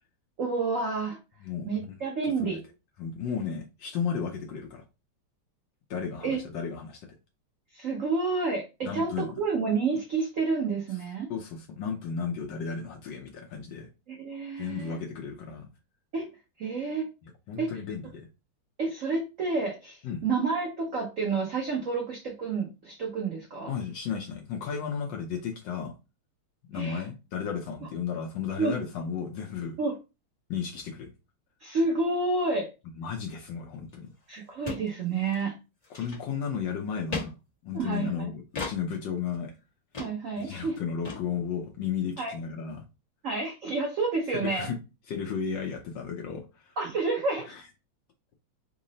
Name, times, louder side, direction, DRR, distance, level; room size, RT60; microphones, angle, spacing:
voice 1, 0.4-1.2 1.6-2.6 6.2-6.4 7.7-11.3 14.1-15.0 16.1-16.3 16.6-17.1 17.6-17.7 18.8-23.7 26.7-27.1 28.6-28.7 29.8-29.9 31.6-32.7 34.3-35.5 37.7-38.3 40.0-40.8 42.2-42.3 43.2-44.7 46.8-47.5, right 4 dB, 75° right, 0.7 m, -29 dB
voice 2, 3.0-4.8 5.9-7.1 8.8-9.3 11.3-13.9 14.6-15.7 17.5-18.3 20.0-20.2 23.7-25.9 26.7-29.8 30.5-31.1 33.0-34.1 35.9-37.3 37.6-39.5 40.4-42.8 44.3-44.8 45.1-46.7 47.5-47.6, left 6 dB, 70° left, 1.2 m, -34 dB
sound 1, 33.9-34.0 34.2-34.3 34.6-34.9 35.2-35.4 35.8-36.5 37.1-37.3 38.5-38.8 39.3-39.4 39.9-40.1 40.4-40.5 40.7-40.8 41.0-41.2, left 3 dB, 30° left, 0.7 m, -35 dB
3.7 x 2.0 x 3.8 m
omnidirectional pair, 2.4 m